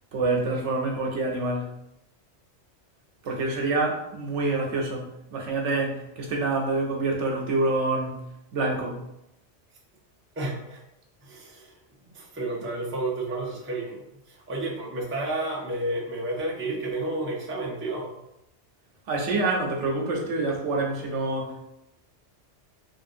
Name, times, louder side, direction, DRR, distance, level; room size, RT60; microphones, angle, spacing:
voice 1, 0.1-1.7 3.2-8.2 8.5-9.0 19.1-21.7, right 2 dB, 85° right, 0 dB, 1.0 m, -27 dB
voice 2, 10.4-10.8 11.2-11.8 12.0-14.0 14.3-18.2, right 2 dB, 15° right, -3 dB, 0.4 m, -31 dB
3.3 x 2.5 x 2.6 m, 0.84 s
omnidirectional pair, 1.2 m